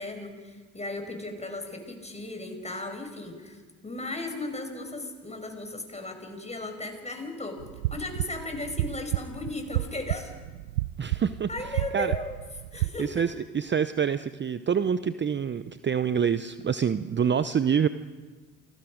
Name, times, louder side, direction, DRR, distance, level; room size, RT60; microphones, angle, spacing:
voice 1, 0.0-7.6 7.9-10.3 11.5-12.4 12.7-13.1, left 2 dB, 15° left, 5 dB, 5.6 m, -36 dB
sound 1, 7.6-12.9, right 16 dB, 85° right, 0.6 m, -32 dB
voice 2, 11.0-11.5 11.9-12.1 12.7-17.9, right 7 dB, 30° right, 13 dB, 0.8 m, -26 dB
28.5 x 20.0 x 5.2 m, 1.4 s
hypercardioid pair, 55°, 40 cm